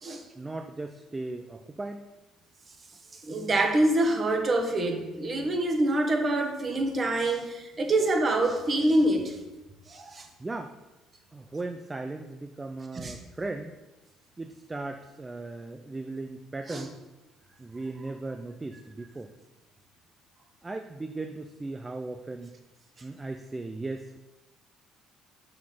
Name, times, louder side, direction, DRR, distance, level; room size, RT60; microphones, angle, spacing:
voice 1, 0.4-2.0 10.4-10.8 11.3-13.8 14.4-16.9 17.6-19.3 20.6-22.5 23.0-24.2, right 2 dB, 20° right, 6 dB, 0.5 m, -37 dB
voice 2, 3.1-9.4 9.9-10.3 12.9-13.2 16.7-16.8, right 1 dB, 40° right, 3 dB, 1.7 m, -26 dB
6.6 x 6.2 x 5.6 m, 1.1 s
hypercardioid pair, 65°, 0 cm